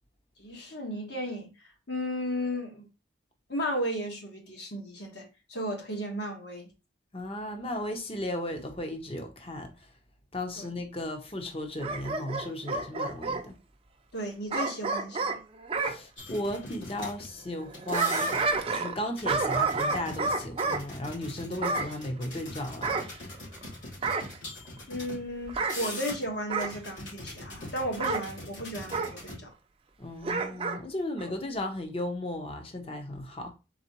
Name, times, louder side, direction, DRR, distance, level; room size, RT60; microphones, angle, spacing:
voice 1, 0.4-1.5 1.9-2.9 3.5-6.7 10.6-10.7 14.1-15.4 24.9-29.5, equal, 60° left, 1.3 m, -34 dB
voice 2, 7.1-9.9 10.3-13.6 15.8-23.4 30.0-33.5, left 1 dB, 30° left, 0.7 m, -35 dB
Bark / Growling, 11.8-13.4 14.5-16.0 17.6-19.0 19.2-20.8 21.6-21.9 22.8-23.6 24.0-24.4 25.5-25.8 26.5-26.8 28.0-28.3 28.9-29.1 30.2-30.8 31.2-31.3, right 4 dB, 30° right, 0.4 m, -29 dB
sound 1, 16.2-17.4 17.7-18.7 19.2-25.2 25.6-26.3 26.6-29.4, left 1 dB, 80° left, 2.5 m, -42 dB
4.0 x 3.7 x 2.9 m
head